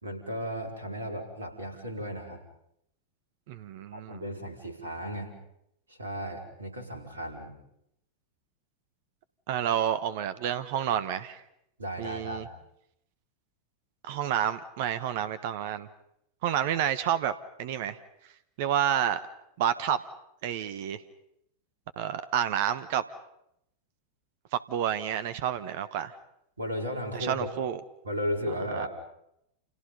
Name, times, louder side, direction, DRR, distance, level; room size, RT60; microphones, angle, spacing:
voice 1, 0.0-2.4 3.9-5.3 5.9-7.6 11.8-12.5 26.6-27.5 28.0-28.9, equal, 75° right, 5 dB, 5.0 m, -35 dB
voice 2, 3.5-4.2 9.5-11.4 12.0-12.4 14.0-15.9 16.4-17.3 17.6-18.0 18.6-19.2 19.6-20.0 20.4-21.0 22.0-23.0 24.5-26.1 27.1-27.8 28.7-28.9, right 10 dB, 50° right, 14 dB, 1.2 m, -29 dB
29.5 x 29.0 x 5.5 m, 0.78 s
figure-of-eight pair, 90°, 0 cm